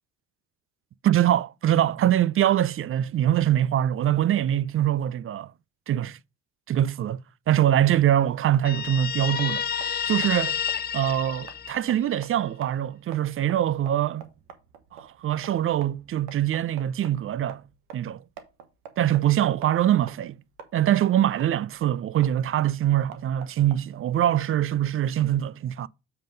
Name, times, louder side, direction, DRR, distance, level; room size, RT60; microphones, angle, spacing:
voice 1, 1.0-5.5 5.9-6.2 6.7-7.2 7.5-9.6 10.1-10.6 10.9-14.3 14.9-17.6 17.9-18.2 19.0-20.4 20.7-25.9, right 11 dB, 35° right, 0.4 m, -23 dB
sound 1, 8.0-24.7, right 7 dB, 85° right, 1.2 m, -48 dB
Guitar, 8.6-12.2, left 8 dB, 25° left, 0.5 m, -30 dB
7.4 x 3.8 x 5.2 m
hypercardioid pair, 65°, 39 cm